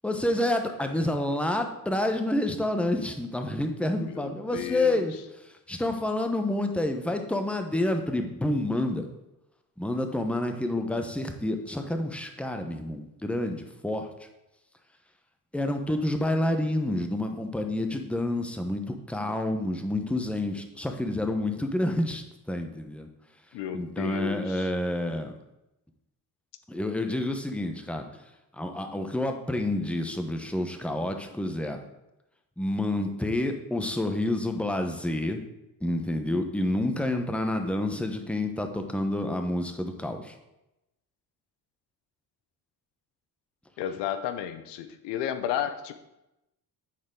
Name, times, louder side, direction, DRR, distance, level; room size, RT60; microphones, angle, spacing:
voice 1, 0.0-9.1 9.8-14.3 15.5-23.1 23.7-25.3 26.7-28.1 28.5-31.8 32.6-35.4 35.8-40.4, left 1 dB, 5° left, 5 dB, 0.9 m, -29 dB
voice 2, 4.0-5.0 23.5-24.7 43.8-46.0, left 9 dB, 85° left, 11 dB, 0.7 m, -33 dB
10.0 x 4.3 x 3.8 m, 0.92 s
supercardioid pair, 75°, 41 cm